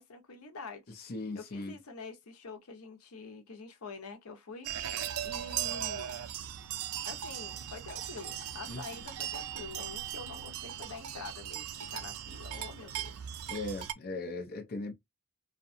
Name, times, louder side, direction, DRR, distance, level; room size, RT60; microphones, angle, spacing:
voice 1, 0.0-6.1 7.1-13.3, left 4 dB, 85° left, 0.7 m, -47 dB
voice 2, 1.0-1.8 8.7-8.8 13.5-14.9, left 2 dB, 45° left, 0.6 m, -38 dB
sound 1, 4.6-13.9, right 10 dB, 75° right, 0.4 m, -38 dB
2.7 x 2.2 x 2.5 m
head